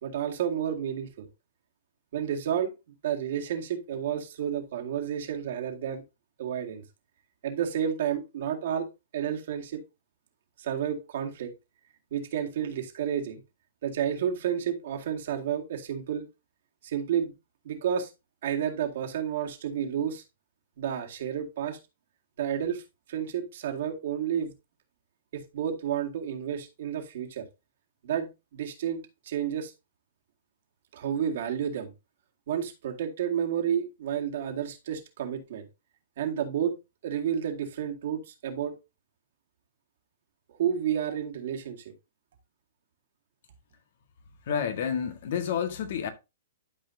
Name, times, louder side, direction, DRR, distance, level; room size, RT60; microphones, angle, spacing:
voice 1, 0.0-1.3 2.1-2.7 3.0-6.0 6.4-6.8 7.4-8.9 9.1-9.8 10.6-11.5 12.1-13.4 13.8-16.3 16.8-17.3 17.6-18.1 18.4-20.2 20.8-21.8 22.4-22.8 23.1-24.5 25.3-27.5 28.0-29.0 29.2-29.7 30.9-31.9 32.5-35.7 36.2-36.7 37.0-38.8 40.5-41.8, right 9 dB, 60° right, 2.0 m, -31 dB
voice 2, 44.5-46.1, left 7 dB, 60° left, 1.6 m, -29 dB
12.5 x 4.9 x 2.7 m
hypercardioid pair, 120°, 0 cm